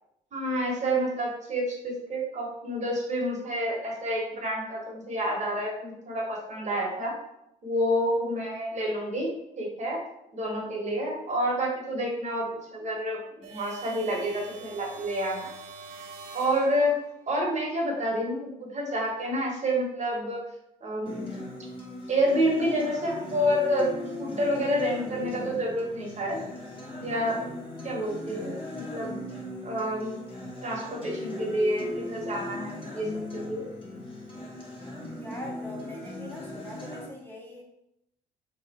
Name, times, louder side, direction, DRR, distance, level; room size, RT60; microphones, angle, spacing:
voice 1, 0.3-7.1 7.6-10.0 10.3-15.5 16.3-16.9 17.3-20.4 20.8-21.3 22.1-23.9 24.2-26.4 27.0-27.4 27.8-29.2 29.6-30.2 30.6-33.7, equal, 40° right, -2 dB, 1.4 m, -29 dB
sound 1, 13.4-17.3, right 3 dB, 80° right, 0.6 m, -44 dB
Acoustic guitar, 21.1-37.1, left 1 dB, 30° left, 1.3 m, -38 dB
voice 2, 35.1-37.6, left 1 dB, 10° left, -2 dB, 0.9 m, -42 dB
3.1 x 2.4 x 4.3 m, 0.82 s
supercardioid pair, 65°, 18 cm